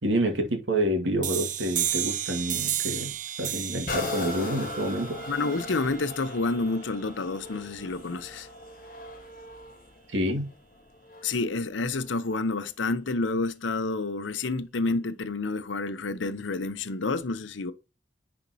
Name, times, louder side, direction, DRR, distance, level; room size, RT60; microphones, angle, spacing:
voice 1, 0.0-5.2 10.1-10.5, right 1 dB, 85° right, 2.0 m, -28 dB
sound 1, 1.2-6.6, right 11 dB, 40° right, 0.6 m, -33 dB
sound 2, 3.9-11.5 12.1-12.2, left 2 dB, 45° left, 1.3 m, -38 dB
voice 2, 5.3-8.5 11.2-17.7, left 3 dB, 85° left, 0.8 m, -29 dB
10.0 x 4.4 x 2.8 m
head